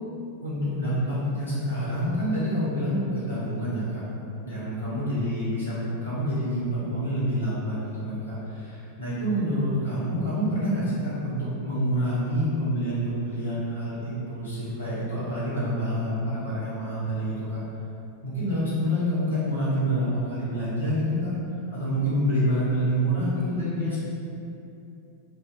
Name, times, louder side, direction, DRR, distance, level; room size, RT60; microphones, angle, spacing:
voice 1, 0.4-4.0 4.4-17.6 18.2-21.3 21.7-24.0, equal, 75° left, -11 dB, 1.1 m, -27 dB
2.7 x 2.6 x 2.5 m, 2.7 s
figure-of-eight pair, 90°, 0 cm